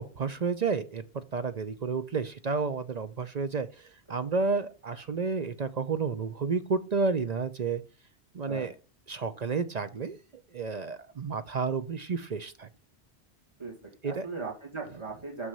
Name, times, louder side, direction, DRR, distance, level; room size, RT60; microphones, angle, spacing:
voice 1, 0.0-7.8 8.3-8.8 9.1-12.7 14.0-14.3, right 4 dB, 45° right, 11 dB, 0.6 m, -31 dB
voice 2, 13.6-15.5, right 4 dB, 25° right, -2 dB, 2.3 m, -38 dB
6.3 x 6.0 x 5.5 m, 0.35 s
omnidirectional pair, 1.1 m